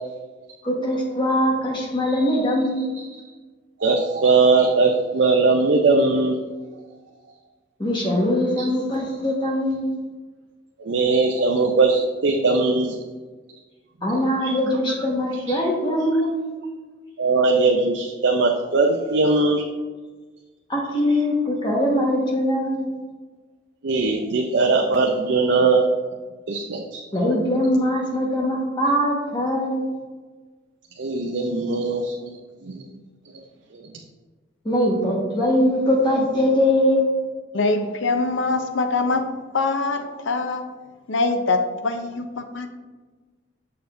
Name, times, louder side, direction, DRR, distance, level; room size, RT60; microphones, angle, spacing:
voice 1, 0.6-3.0 7.8-10.0 14.0-16.5 20.7-23.0 27.1-30.0 34.6-37.1, left 1 dB, 25° left, -2 dB, 1.3 m, -22 dB
voice 2, 3.8-6.4 8.6-8.7 10.8-13.0 14.4-14.6 15.5-15.6 17.2-19.6 23.8-25.9 26.5-27.0 31.0-32.4 32.6-32.8 33.7-33.8, right 3 dB, 65° right, 2 dB, 0.5 m, -20 dB
voice 3, 37.5-40.7 41.1-42.7, left 3 dB, 75° left, 7 dB, 0.6 m, -23 dB
6.8 x 6.8 x 2.6 m, 1.4 s
head